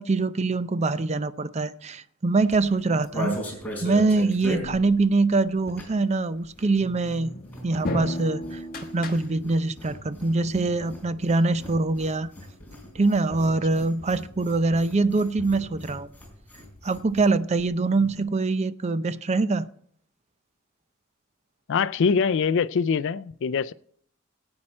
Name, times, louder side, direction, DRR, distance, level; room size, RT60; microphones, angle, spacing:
voice 1, 0.0-3.4 3.8-7.3 7.6-8.6 8.9-12.3 12.9-16.1 16.8-19.7, right 3 dB, 35° right, 0.5 m, -24 dB
sound 1, 2.4-6.1 6.4-17.3 17.6-17.7 17.9-18.2, equal, 10° left, 4.3 m, -39 dB
sound 2, 6.8-9.7, left 1 dB, 45° left, 1.4 m, -34 dB
voice 2, 21.7-23.7, left 5 dB, 65° left, 0.4 m, -24 dB
18.5 x 8.8 x 4.3 m
head